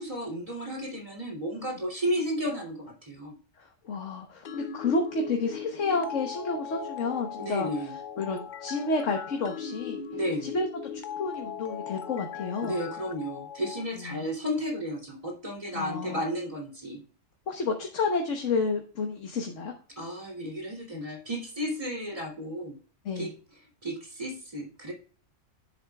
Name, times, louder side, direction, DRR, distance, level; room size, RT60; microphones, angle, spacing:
voice 1, 0.0-3.4 7.4-8.0 10.1-10.5 12.6-17.0 20.0-22.8 23.1-23.3 23.8-24.9, equal, 25° right, -1 dB, 2.9 m, -33 dB
voice 2, 3.6-7.7 8.2-10.0 10.4-10.7 10.9-12.8 14.1-14.2 15.7-16.2 17.5-19.7 23.0-23.3, left 3 dB, 80° left, 3 dB, 1.5 m, -30 dB
sound 1, 4.5-13.8, left 7 dB, 55° left, 0.6 m, -39 dB
10.0 x 8.0 x 2.3 m, 0.39 s
omnidirectional pair, 1.3 m